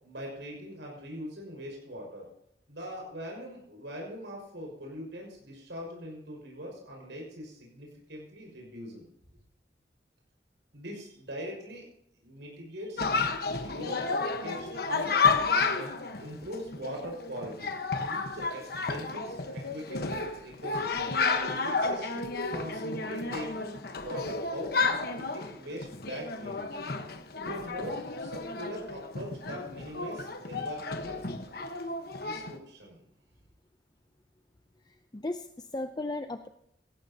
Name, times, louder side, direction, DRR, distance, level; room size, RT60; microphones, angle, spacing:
voice 1, 0.0-2.3 2.7-9.0 10.7-11.9 12.2-13.2 13.6-14.1 14.4-15.2 15.7-17.7 18.1-20.0 20.4-21.3 21.6-23.7 24.0-26.7 27.4-31.4 32.2-33.0, equal, 90° right, -1 dB, 5.5 m, -41 dB
Chatter, 13.0-32.6, left 4 dB, 60° left, 1.2 m, -31 dB
voice 2, 34.8-36.5, left 2 dB, 25° left, 8 dB, 0.5 m, -37 dB
17.5 x 15.0 x 2.9 m, 0.76 s
head